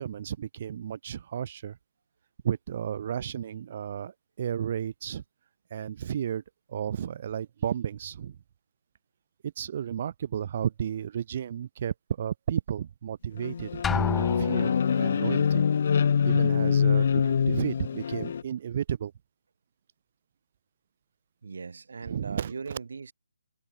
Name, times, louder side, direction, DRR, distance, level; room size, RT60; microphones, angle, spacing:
voice 1, 0.0-1.8 2.4-5.2 5.7-6.4 6.7-8.4 9.4-15.6 16.2-17.1 17.4-19.1 22.0-22.5, right 9 dB, 35° right, 1.2 m, -33 dB
sound 1, 13.4-18.4, left 7 dB, 45° left, 0.7 m, -25 dB
Drum, 13.8-15.0, left 7 dB, 5° left, 0.9 m, -30 dB
voice 2, 21.4-23.1, right 5 dB, 60° right, 4.4 m, -39 dB
hypercardioid pair, 165°, 0 cm